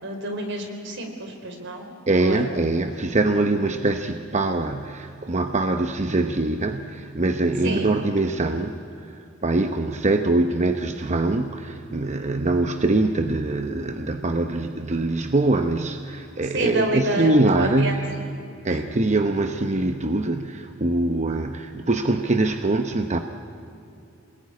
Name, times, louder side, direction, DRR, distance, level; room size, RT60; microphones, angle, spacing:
voice 1, 0.0-2.5 7.6-7.9 16.5-18.0, right 1 dB, 60° right, 4 dB, 4.1 m, -28 dB
voice 2, 2.1-8.8 9.1-18.1 18.6-23.2, right 2 dB, 35° right, 6 dB, 0.9 m, -23 dB
27.0 x 20.0 x 9.6 m, 2.6 s
head